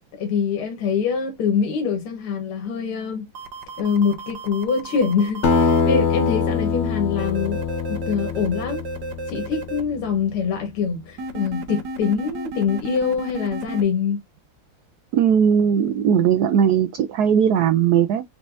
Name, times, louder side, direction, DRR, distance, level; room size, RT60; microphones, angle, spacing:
voice 1, 0.2-3.3 3.8-7.6 7.9-8.8 9.3-14.2, left 6 dB, 90° left, 2.2 m, -24 dB
sound 1, 3.3-5.8 7.2-9.8 11.2-13.8, right 2 dB, 60° right, 1.3 m, -33 dB
Acoustic guitar, 5.4-10.3, left 5 dB, 70° left, 0.6 m, -23 dB
voice 2, 15.1-18.2, right 8 dB, 80° right, 0.8 m, -18 dB
4.5 x 4.2 x 2.6 m
omnidirectional pair, 2.3 m